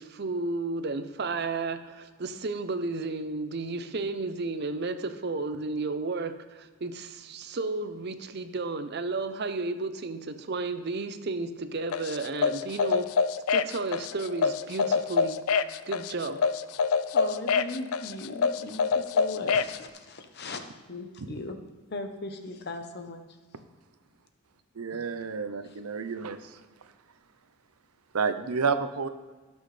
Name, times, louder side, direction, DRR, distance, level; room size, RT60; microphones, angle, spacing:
voice 1, 0.0-13.1 13.5-15.4 15.9-16.4, right 3 dB, 50° right, 10 dB, 0.6 m, -33 dB
sound 1, 11.9-19.8, left 5 dB, 80° left, 0.4 m, -26 dB
voice 2, 17.1-20.6 20.9-21.6 21.9-23.3 24.9-25.0, left 2 dB, 50° left, 7 dB, 0.8 m, -38 dB
voice 3, 24.7-26.6 28.1-29.1, right 5 dB, 90° right, 10 dB, 0.7 m, -30 dB
16.5 x 6.3 x 3.3 m, 1.3 s
head